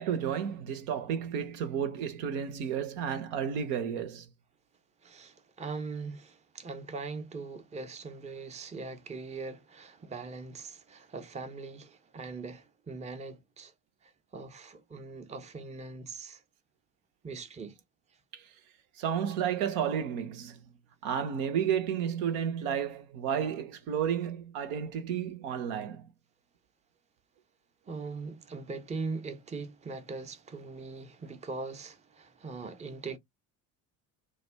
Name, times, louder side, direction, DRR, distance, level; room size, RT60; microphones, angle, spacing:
voice 1, 0.0-4.3 18.3-18.4 19.0-20.6 21.0-26.0, right 8 dB, 70° right, 0.8 m, -32 dB
voice 2, 5.0-13.7 14.3-16.4 17.2-17.7 27.9-33.2, right 4 dB, 15° right, 0.6 m, -41 dB
2.3 x 2.1 x 3.3 m
hypercardioid pair, 55°, 48 cm